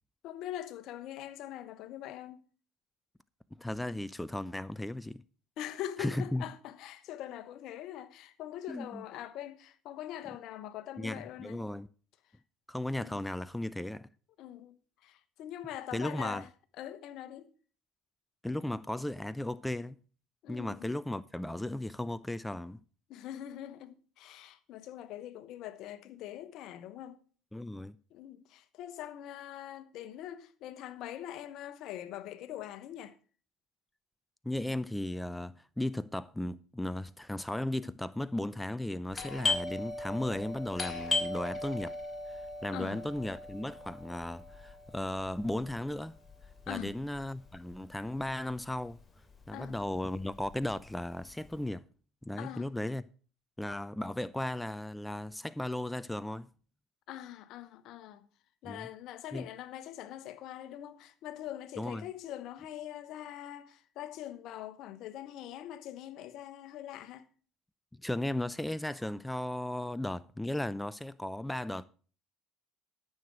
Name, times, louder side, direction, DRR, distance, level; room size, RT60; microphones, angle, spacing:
voice 1, 0.2-2.4 5.6-11.6 12.9-13.2 14.4-14.8 15.0-16.5 16.8-17.5 20.4-20.9 23.1-27.2 28.1-33.1 42.7-43.0 46.7-46.9 49.5-49.7 52.4-52.7 57.1-58.3 58.6-67.2, left 12 dB, 60° left, 1.0 m, -43 dB
voice 2, 3.6-5.2 6.0-6.4 8.7-9.0 11.0-11.9 12.7-14.1 15.9-16.4 18.4-20.0 20.5-22.8 27.5-27.9 34.4-42.0 42.6-46.2 46.7-49.0 49.5-51.8 52.2-53.0 53.6-56.5 58.6-58.9 59.3-59.5 61.8-62.0 68.0-71.8, left 1 dB, 5° left, 0.5 m, -36 dB
Doorbell, 39.1-48.5 48.8-48.9 49.5-49.8 50.2-51.5, left 3 dB, 25° left, 2.9 m, -37 dB
13.0 x 6.7 x 6.1 m
hypercardioid pair, 65°, 0 cm